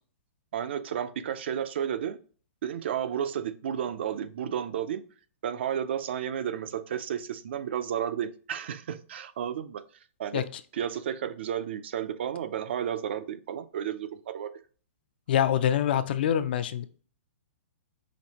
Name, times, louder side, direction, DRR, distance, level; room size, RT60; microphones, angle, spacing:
voice 1, 0.5-2.2 2.6-5.0 5.4-9.8 10.2-10.4 10.7-14.5, right 9 dB, 55° right, 12 dB, 0.4 m, -32 dB
voice 2, 15.3-16.8, left 10 dB, 45° left, 12 dB, 0.4 m, -25 dB
5.1 x 2.7 x 2.8 m, 0.40 s
hypercardioid pair, 165°, 7 cm